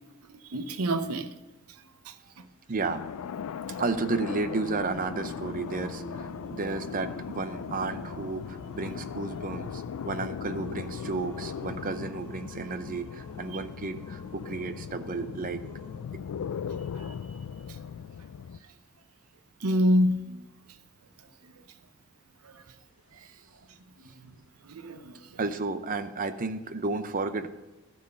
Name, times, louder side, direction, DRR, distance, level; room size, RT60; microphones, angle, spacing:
voice 1, 0.5-1.3 2.1-2.4 19.6-20.4 22.4-22.6 24.2-24.3 24.6-25.2, equal, 80° right, 0.7 m, -27 dB
voice 2, 2.7-3.0 3.8-15.6 25.4-27.5, right 3 dB, 40° right, 0.6 m, -32 dB
sound 1, 2.8-18.6, left 7 dB, 75° left, 0.3 m, -38 dB
Singing, 3.9-16.0, equal, 10° left, 2.3 m, -47 dB
11.5 x 4.7 x 6.6 m
head